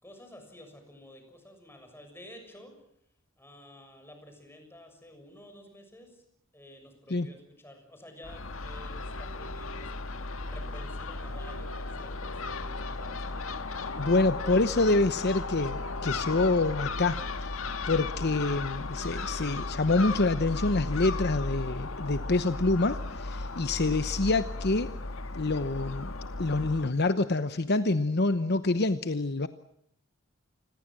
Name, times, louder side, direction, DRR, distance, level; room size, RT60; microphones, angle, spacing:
voice 1, 0.0-2.7 3.4-6.2 6.5-9.9 10.4-14.3, left 1 dB, 10° left, 5 dB, 6.8 m, -51 dB
Crow / Gull seagull, 8.2-26.9, left 3 dB, 80° left, 1.7 m, -35 dB
voice 2, 14.0-17.2 17.9-24.9 25.3-26.1 26.4-29.5, left 2 dB, 55° left, 11 dB, 0.9 m, -26 dB
28.5 x 21.5 x 7.7 m, 0.70 s
head